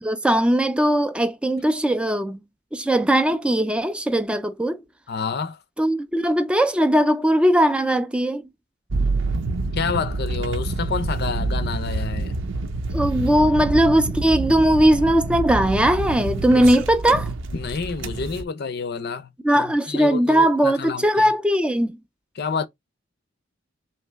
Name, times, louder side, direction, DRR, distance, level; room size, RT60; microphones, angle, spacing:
voice 1, 0.0-2.4 2.7-4.8 5.8-8.4 12.9-17.3 19.4-22.0, right 1 dB, 5° right, 0.3 m, -19 dB
voice 2, 5.1-5.6 9.6-12.4 17.5-21.3 22.4-22.7, left 5 dB, 55° left, 0.5 m, -29 dB
sound 1, 8.9-18.4, right 3 dB, 70° right, 0.6 m, -27 dB
3.3 x 2.9 x 4.4 m
head